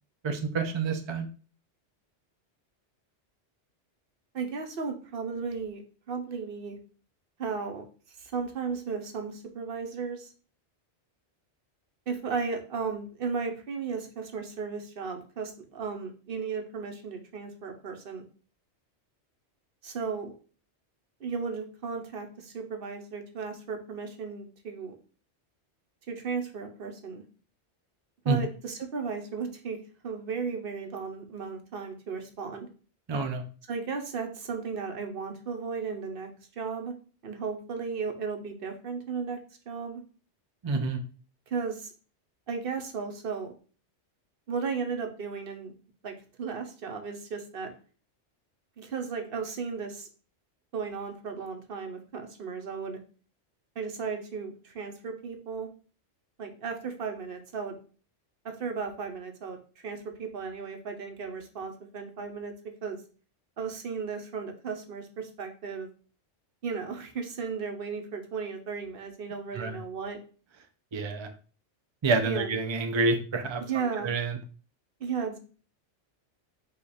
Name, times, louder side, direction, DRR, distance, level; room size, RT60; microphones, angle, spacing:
voice 1, 0.2-1.3 28.3-28.4 33.1-33.4 40.6-41.0 69.5-69.8 70.9-71.3 72.0-73.6 74.0-74.4, right 3 dB, 40° right, 4 dB, 0.4 m, -28 dB
voice 2, 4.3-5.8 6.1-6.8 7.4-7.8 8.2-10.3 12.1-18.2 19.8-20.3 21.2-24.9 26.1-27.2 28.2-29.8 30.0-32.7 33.7-36.3 36.6-36.9 37.2-39.4 39.7-40.0 41.5-41.9 42.5-43.5 44.5-45.7 46.0-47.7 48.8-50.1 50.7-53.0 53.8-55.7 56.4-57.7 58.4-59.6 59.8-62.5 62.8-63.0 63.6-65.9 66.6-70.2 72.2-72.5 73.6-74.1 75.0-75.4, right 5 dB, 55° right, 5 dB, 0.9 m, -35 dB
5.0 x 2.4 x 4.1 m, 0.38 s
omnidirectional pair, 1.2 m